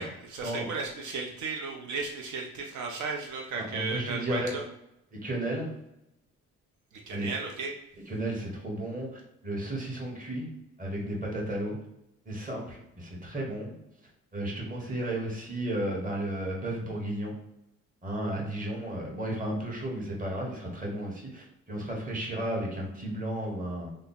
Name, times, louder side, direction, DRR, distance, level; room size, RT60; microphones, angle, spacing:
voice 1, 0.0-4.6 7.1-7.7, right 4 dB, 75° right, 1 dB, 0.6 m, -35 dB
voice 2, 3.5-4.5 5.2-5.7 7.1-7.3 8.1-10.5 10.8-11.8 12.2-13.7 14.3-17.4 18.0-23.9, right 1 dB, 25° right, -2 dB, 1.3 m, -33 dB
3.4 x 2.0 x 3.9 m, 0.83 s
cardioid pair, 90°, 30 cm